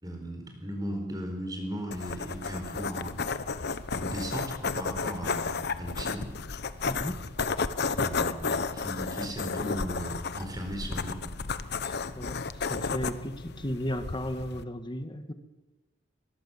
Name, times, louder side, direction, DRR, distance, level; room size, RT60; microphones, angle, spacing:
voice 1, 0.0-3.3 3.9-6.3 7.9-11.3, equal, 20° right, 4 dB, 4.5 m, -37 dB
sound 1, 1.9-14.6, left 4 dB, 55° left, 1.0 m, -33 dB
voice 2, 6.9-7.2 11.8-15.3, equal, 25° left, 8 dB, 1.9 m, -35 dB
23.5 x 21.5 x 7.3 m, 1.1 s
head